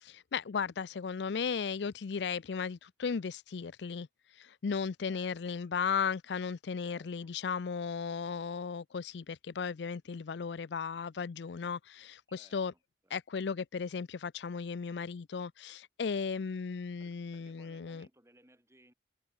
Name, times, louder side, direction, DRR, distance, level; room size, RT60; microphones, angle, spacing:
voice 1, 0.0-4.1 4.4-12.7 13.1-18.1, left 6 dB, 75° left, 0.5 m, -36 dB
voice 2, 5.1-5.6 6.8-7.3 12.3-13.2 16.0-16.5 17.0-18.9, right 1 dB, 15° right, 6.5 m, -64 dB
head